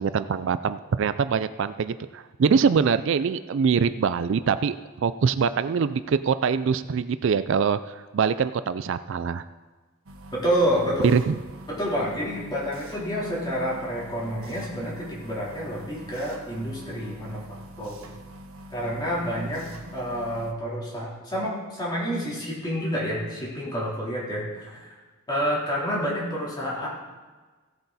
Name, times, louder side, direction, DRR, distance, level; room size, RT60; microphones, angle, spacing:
voice 1, 0.0-4.8 5.0-9.4 11.0-11.4, right 6 dB, 60° right, 13 dB, 0.4 m, -23 dB
sound 1, 10.1-20.5, right 1 dB, 90° right, 1.2 m, -45 dB
voice 2, 10.3-11.1 11.7-17.4 17.8-18.0 18.7-24.9 25.3-26.9, equal, 20° left, -6 dB, 3.5 m, -28 dB
16.5 x 7.9 x 4.1 m, 1.3 s
head